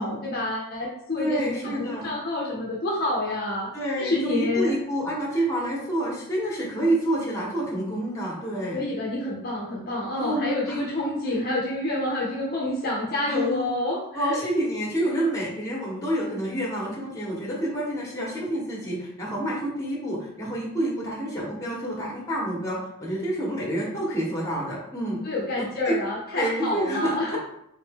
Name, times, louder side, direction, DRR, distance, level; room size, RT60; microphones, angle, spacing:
voice 1, 0.0-3.7 4.0-4.7 8.7-14.4 25.2-27.4, left 2 dB, 45° left, -3 dB, 0.7 m, -28 dB
voice 2, 1.2-2.1 3.7-8.8 10.2-10.9 13.3-13.8 14.1-25.2 25.6-25.9 26.3-27.4, right 1 dB, 15° left, -4 dB, 1.1 m, -28 dB
3.9 x 2.6 x 3.6 m, 0.75 s
head